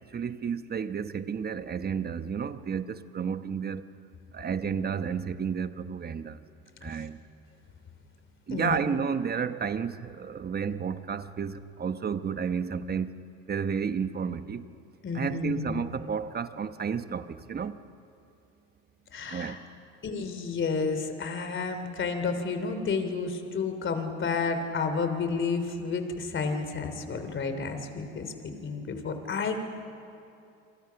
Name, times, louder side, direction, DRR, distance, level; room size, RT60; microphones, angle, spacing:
voice 1, 0.0-3.9 4.3-6.4 6.8-7.2 8.5-13.2 13.5-14.6 15.1-17.7 19.3-19.6, right 6 dB, 30° right, 1.1 m, -31 dB
voice 2, 8.5-8.8 15.0-15.8 19.1-19.6 20.0-29.7, left 4 dB, 35° left, 3.3 m, -31 dB
29.0 x 24.5 x 5.9 m
supercardioid pair, 90°, 32 cm